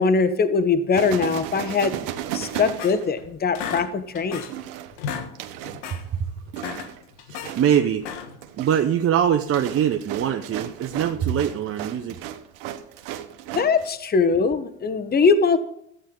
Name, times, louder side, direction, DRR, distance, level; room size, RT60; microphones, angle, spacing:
voice 1, 0.0-1.9 2.3-4.4 13.5-15.6, left 4 dB, 30° left, 11 dB, 1.2 m, -21 dB
sound 1, 0.9-3.6 4.5-5.9 6.5-7.1 7.4-7.9 8.3-13.9, right 11 dB, 75° right, 1.3 m, -35 dB
sound 2, 2.5-3.2 3.5-4.6 4.9-5.3 5.6-6.0 6.4-7.5 8.0-8.5, left 7 dB, 85° left, 1.5 m, -34 dB
voice 2, 7.3-8.1 8.6-12.2, right 9 dB, 40° right, 6 dB, 0.9 m, -23 dB
14.5 x 8.9 x 3.8 m, 0.74 s
supercardioid pair, 85°, 33 cm